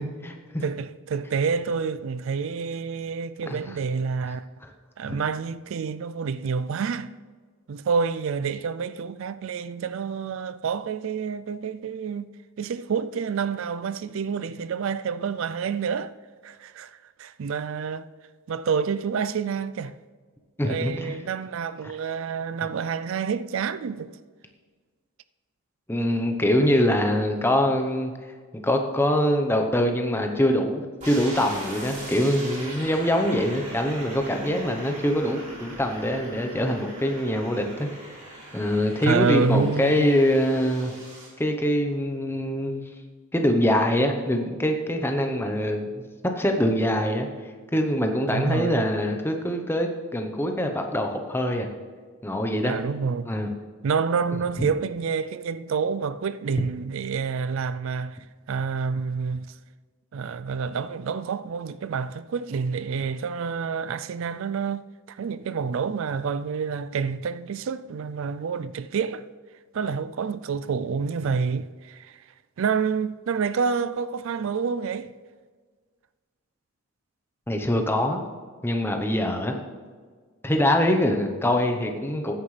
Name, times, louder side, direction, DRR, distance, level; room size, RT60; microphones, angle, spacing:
voice 1, 0.0-0.6 3.5-3.6 4.6-4.7 5.1-5.2 20.6-21.2 25.9-28.1 28.6-37.9 38.5-40.9 41.4-42.8 43.3-46.0 46.4-47.3 47.7-51.7 52.2-52.7 53.3-53.5 54.6-54.7 77.5-78.2 78.6-79.5 80.4-82.3, left 1 dB, 10° left, 0.8 m, -24 dB
voice 2, 0.6-4.4 5.0-7.1 7.7-12.3 12.6-16.1 16.4-16.9 17.2-18.1 18.5-19.9 20.6-24.2 39.0-40.1 48.3-48.8 52.6-53.3 53.8-58.2 58.5-59.5 60.1-64.8 65.1-69.2 69.7-72.2 72.6-75.1, right 5 dB, 65° right, 0.3 m, -28 dB
sound 1, 31.0-41.3, right 1 dB, 30° right, 3.3 m, -40 dB
16.0 x 9.5 x 3.3 m
head